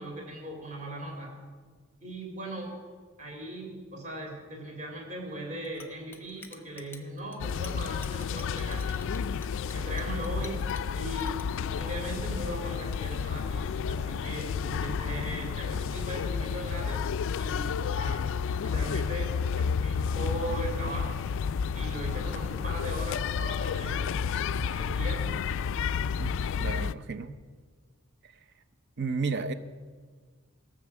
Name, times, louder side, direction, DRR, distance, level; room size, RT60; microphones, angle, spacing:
voice 1, 0.0-1.4 2.0-2.7 3.2-9.4 9.7-10.6 10.9-11.3 11.8-17.0 17.3-18.2 18.6-19.3 19.5-21.2 21.7-24.1 24.5-25.3, right 1 dB, 35° right, 0 dB, 3.5 m, -38 dB
Chink clink, 5.6-11.4, left 4 dB, 10° left, 0.9 m, -49 dB
sound 1, 7.4-26.9, left 6 dB, 65° left, 0.3 m, -31 dB
voice 2, 26.2-27.4 28.2-28.3 29.0-29.5, right 4 dB, 55° right, 10 dB, 0.7 m, -33 dB
16.5 x 6.6 x 7.2 m, 1.5 s
head